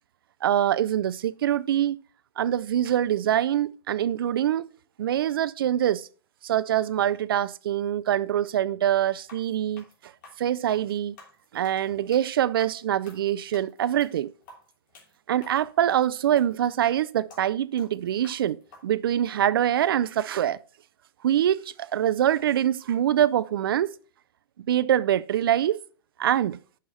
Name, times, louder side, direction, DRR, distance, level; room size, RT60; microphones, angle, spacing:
voice 1, 0.4-2.0 2.4-4.7 5.0-6.1 6.4-9.8 10.4-11.2 11.5-14.3 15.3-20.6 21.2-23.9 24.7-25.8 26.2-26.6, right 11 dB, 65° right, 0.4 m, -24 dB
sound 1, 9.2-18.8, left 2 dB, 50° left, 3.2 m, -52 dB
6.4 x 5.6 x 4.9 m
hypercardioid pair, 145°, 13 cm